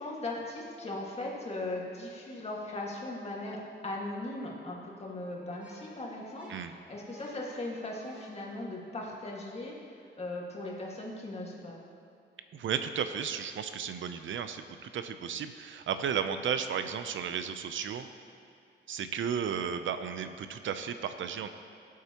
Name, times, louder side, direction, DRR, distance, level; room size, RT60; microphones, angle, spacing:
voice 1, 0.0-3.6 3.8-11.8, left 2 dB, 30° left, -3 dB, 1.9 m, -38 dB
sound 1, 5.3-9.2, equal, 5° right, 2.5 m, -57 dB
voice 2, 12.5-18.1 18.9-21.5, right 7 dB, 80° right, 9 dB, 0.6 m, -34 dB
18.0 x 8.4 x 3.0 m, 2.6 s
wide cardioid pair, 140°, 19 cm